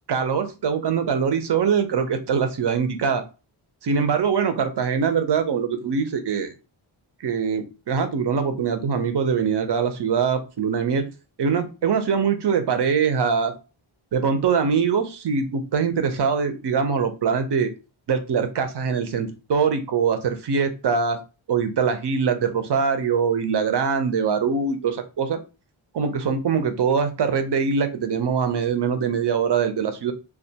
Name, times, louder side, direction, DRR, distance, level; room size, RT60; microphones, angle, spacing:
voice 1, 0.1-3.2 3.8-6.5 7.2-11.1 11.4-13.5 14.1-17.7 18.1-21.2 21.5-25.4 25.9-30.1, right 6 dB, 55° right, 8 dB, 0.6 m, -23 dB
2.3 x 2.2 x 2.7 m, 0.31 s
wide cardioid pair, 55°, 48 cm